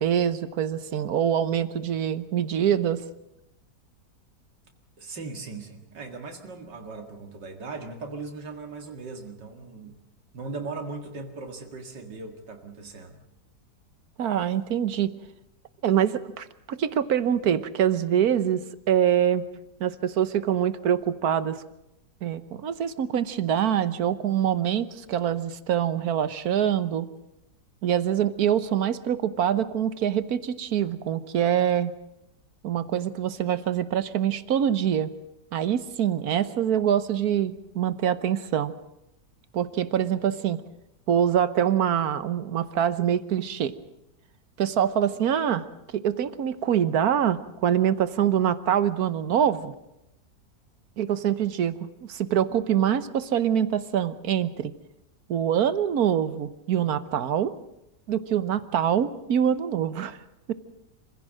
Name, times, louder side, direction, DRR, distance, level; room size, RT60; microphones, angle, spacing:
voice 1, 0.0-3.0 14.2-15.1 15.8-19.4 19.8-21.6 22.2-27.1 27.8-31.9 32.6-35.1 35.5-38.7 39.5-40.6 41.1-43.7 44.6-45.7 45.9-49.7 51.0-54.7 55.3-57.5 58.1-60.2 60.5-60.6, right 9 dB, 65° right, 14 dB, 1.4 m, -25 dB
voice 2, 5.0-10.0 10.3-13.2, right 3 dB, 80° right, 4 dB, 2.7 m, -38 dB
26.0 x 16.0 x 7.6 m, 0.87 s
omnidirectional pair, 1.9 m